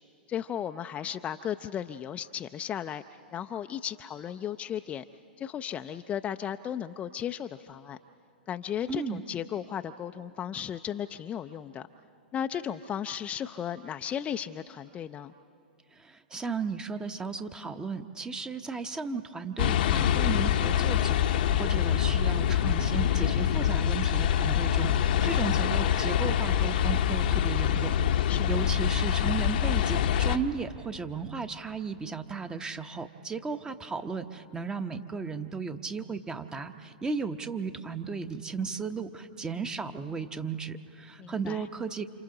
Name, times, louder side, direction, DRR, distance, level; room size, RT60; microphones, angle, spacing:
voice 1, 0.3-3.0 3.3-5.0 5.4-8.0 8.5-11.8 12.3-15.3 28.3-28.7 41.2-41.6, left 9 dB, 25° left, 8 dB, 0.4 m, -35 dB
voice 2, 8.9-9.2 15.9-42.0, right 5 dB, 15° right, 9 dB, 0.9 m, -35 dB
sound 1, 19.6-30.4, left 10 dB, 60° left, 0.8 m, -25 dB
29.5 x 27.5 x 3.9 m, 2.7 s
hypercardioid pair, 110°, 5 cm